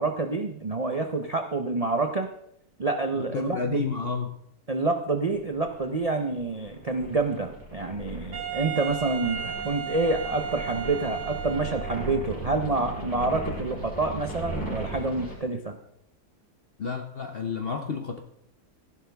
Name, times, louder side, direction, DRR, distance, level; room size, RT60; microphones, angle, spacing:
voice 1, 0.0-2.3 2.8-3.8 4.7-15.7, right 3 dB, 50° right, 5 dB, 0.4 m, -28 dB
voice 2, 3.2-4.3 16.8-18.2, left 5 dB, 55° left, 6 dB, 0.7 m, -31 dB
sound 1, 5.3-15.4, right 1 dB, 5° left, 3.8 m, -38 dB
Wind instrument woodwind instrument, 8.3-12.2, right 8 dB, 70° right, 1.8 m, -34 dB
15.0 x 11.0 x 3.5 m, 0.73 s
omnidirectional pair, 1.8 m